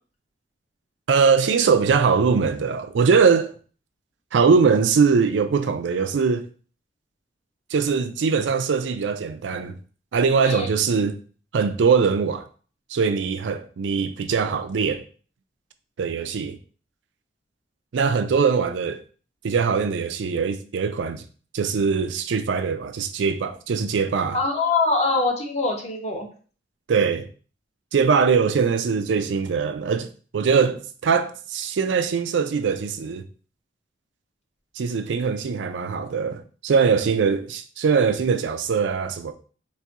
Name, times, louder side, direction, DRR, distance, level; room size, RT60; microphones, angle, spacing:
voice 1, 1.1-3.5 4.3-6.5 7.7-9.7 10.1-11.2 11.5-12.4 12.9-15.0 16.0-16.6 17.9-19.0 19.4-21.2 21.5-24.4 26.9-27.3 27.9-30.1 30.3-33.2 34.8-39.3, right 5 dB, 70° right, 0.4 m, -21 dB
voice 2, 24.3-26.3, left 3 dB, 35° left, 0.7 m, -23 dB
4.1 x 2.6 x 2.4 m
head